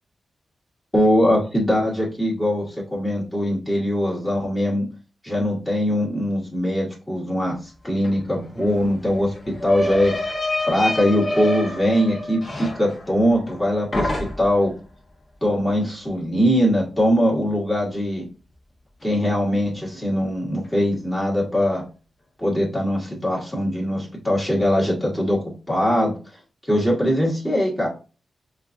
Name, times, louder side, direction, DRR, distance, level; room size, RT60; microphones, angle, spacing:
voice 1, 0.9-4.8 5.2-7.5 7.8-10.1 10.6-14.7 15.4-18.2 19.0-21.8 22.4-25.4 25.7-26.1 26.7-27.9, equal, 15° left, -4 dB, 1.5 m, -21 dB
sound 1, 8.0-8.1 8.4-13.6 13.9-14.7, left 1 dB, 40° left, 1.2 m, -27 dB
5.6 x 2.4 x 2.5 m, 0.35 s
wide cardioid pair, 105°, 0 cm